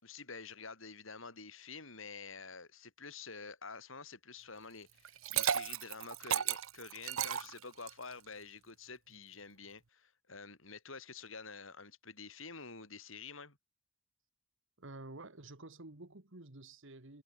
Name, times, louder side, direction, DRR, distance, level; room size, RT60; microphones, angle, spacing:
voice 1, 0.0-13.6, left 4 dB, 70° left, 5.6 m, -49 dB
Liquid, 5.0-8.1, right 9 dB, 90° right, 1.0 m, -34 dB
voice 2, 14.8-17.2, right 2 dB, 65° right, 2.1 m, -50 dB
head